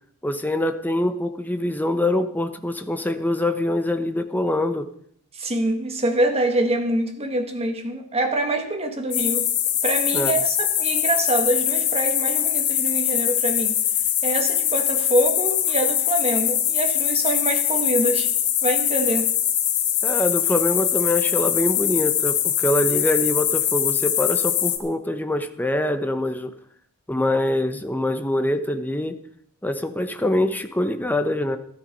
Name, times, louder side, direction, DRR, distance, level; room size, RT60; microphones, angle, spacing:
voice 1, 0.2-4.9 10.1-10.4 20.0-26.5 27.1-29.2 29.6-31.6, left 1 dB, 10° left, 0.9 m, -24 dB
voice 2, 5.3-9.5 9.8-13.8 14.2-18.3 18.6-19.3, right 1 dB, 30° right, 1.8 m, -25 dB
sound 1, 9.1-24.8, left 10 dB, 75° left, 1.5 m, -22 dB
13.5 x 13.0 x 5.3 m
head